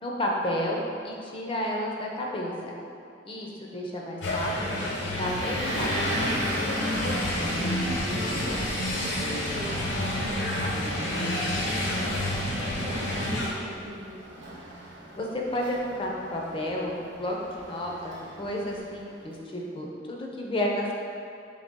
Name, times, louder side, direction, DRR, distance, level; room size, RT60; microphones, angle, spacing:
voice 1, 0.0-2.7 3.2-4.5 4.9-5.9 15.2-20.9, left 1 dB, 30° left, -2 dB, 0.5 m, -31 dB
sound 1, 4.2-13.5, left 1 dB, 75° left, 0.8 m, -29 dB
Motor vehicle (road) / Engine, 5.0-19.3, right 1 dB, 90° right, 0.8 m, -39 dB
voice 2, 6.7-14.6, right 1 dB, 55° right, 0 dB, 0.5 m, -42 dB
3.9 x 3.4 x 3.6 m, 2.4 s
head